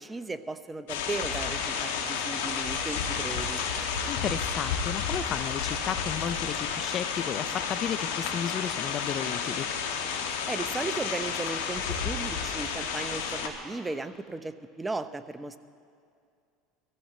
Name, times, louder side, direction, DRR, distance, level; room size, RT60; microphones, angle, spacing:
voice 1, 0.0-3.6 10.5-15.6, right 3 dB, 15° right, 11 dB, 0.6 m, -36 dB
sound 1, 0.9-13.5, left 6 dB, 85° left, 1.6 m, -31 dB
voice 2, 4.1-9.7, left 9 dB, 45° left, 15 dB, 0.5 m, -33 dB
23.5 x 15.0 x 3.2 m, 2.4 s
supercardioid pair, 100°, 0 cm